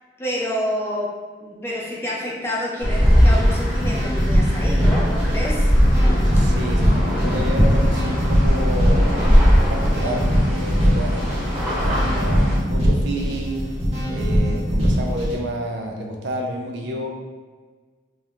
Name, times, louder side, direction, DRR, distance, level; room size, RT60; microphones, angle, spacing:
voice 1, 0.2-1.2 1.4-5.7, equal, 15° left, -4 dB, 0.4 m, -28 dB
sound 1, 2.8-12.6, equal, 5° right, 0.9 m, -19 dB
sound 2, 2.9-15.3, equal, 30° right, 0.9 m, -22 dB
voice 2, 6.3-9.1 9.4-11.3 11.8-13.7 14.1-17.1, right 1 dB, 75° right, 1 dB, 0.4 m, -30 dB
2.4 x 2.1 x 2.9 m, 1.4 s
head